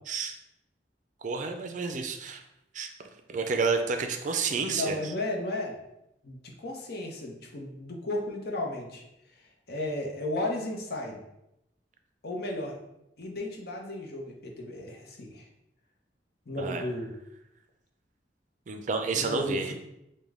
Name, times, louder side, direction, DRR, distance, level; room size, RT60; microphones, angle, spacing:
voice 1, 1.2-2.4 2.7-2.9 3.3-5.0 16.6-16.9 18.7-19.7, right 4 dB, 45° right, 6 dB, 0.4 m, -30 dB
voice 2, 4.7-5.8 6.2-9.0 9.7-11.2 12.2-12.8 13.2-15.4 16.5-17.1 19.1-19.7, left 1 dB, 60° left, 0 dB, 0.8 m, -34 dB
5.1 x 2.2 x 3.6 m, 0.86 s
head